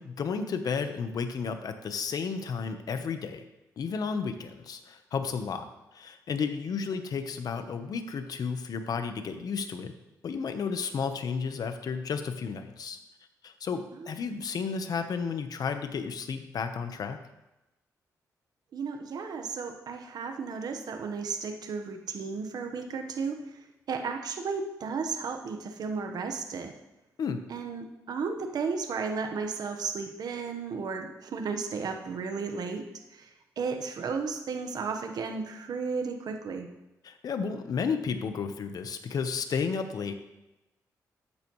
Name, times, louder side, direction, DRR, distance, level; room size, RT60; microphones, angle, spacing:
voice 1, 0.0-3.4 3.8-5.7 5.9-9.9 10.2-13.0 13.4-17.2 27.2-27.5 37.0-40.1, left 5 dB, 65° left, 8 dB, 1.0 m, -32 dB
voice 2, 13.9-14.4 18.7-26.7 27.5-36.7, right 5 dB, 70° right, 5 dB, 1.2 m, -34 dB
12.5 x 8.8 x 3.2 m, 0.99 s
cardioid pair, 70°, 7 cm